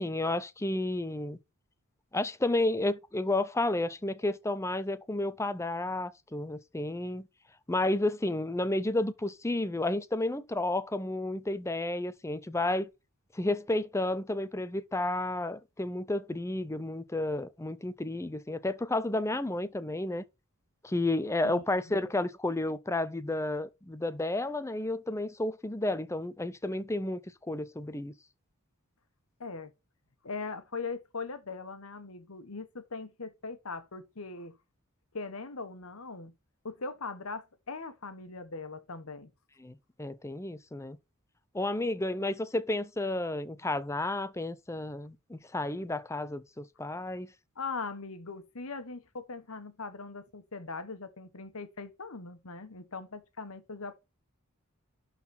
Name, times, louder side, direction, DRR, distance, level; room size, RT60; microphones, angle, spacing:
voice 1, 0.0-1.4 2.1-7.3 7.7-12.9 13.3-20.2 20.8-27.2 27.5-28.1 39.6-41.0 41.5-47.3, left 2 dB, 15° left, 0.6 m, -31 dB
voice 2, 29.4-29.7 30.2-34.6 35.1-36.3 36.6-39.3 47.6-54.0, left 4 dB, 75° left, 1.2 m, -40 dB
11.5 x 4.1 x 4.2 m
head